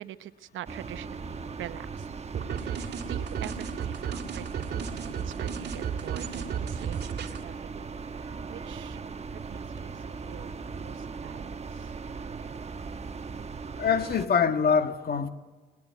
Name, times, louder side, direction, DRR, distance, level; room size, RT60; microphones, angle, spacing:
voice 1, 0.0-2.2 2.5-8.0 8.5-9.0 9.5-11.9, right 12 dB, 80° right, 0.9 m, -44 dB
sound 1, 0.7-14.3, right 5 dB, 35° right, 1.1 m, -39 dB
sound 2, 2.3-7.4, right 7 dB, 55° right, 2.5 m, -34 dB
voice 2, 13.8-15.3, left 6 dB, 50° left, 1.6 m, -24 dB
20.5 x 18.5 x 9.4 m
cardioid pair, 90°, 20 cm